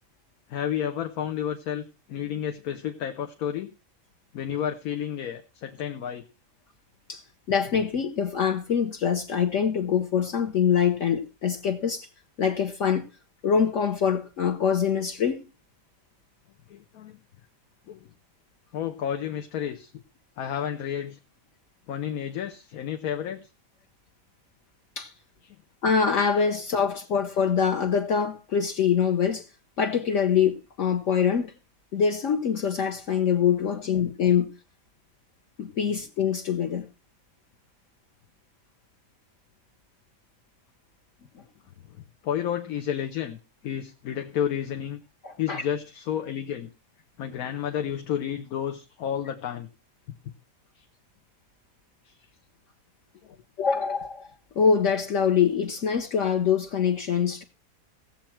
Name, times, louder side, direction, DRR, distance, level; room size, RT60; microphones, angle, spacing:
voice 1, 0.5-3.7 4.3-6.3 16.7-17.2 17.9-18.1 18.7-19.9 20.4-21.2 21.9-23.5 25.4-25.6 41.9-42.0 42.2-45.0 45.4-46.7 47.2-49.7 50.8-50.9 52.0-52.2 53.2-53.4, left 9 dB, 80° left, 1.3 m, -31 dB
voice 2, 7.5-12.1 12.4-13.1 13.4-15.5 25.0-25.1 25.8-29.4 29.8-31.5 31.9-34.5 35.6-36.9 45.2-45.6 53.6-54.3 54.6-57.4, left 7 dB, 60° left, 1.2 m, -24 dB
17.0 x 7.3 x 4.4 m
omnidirectional pair, 1.5 m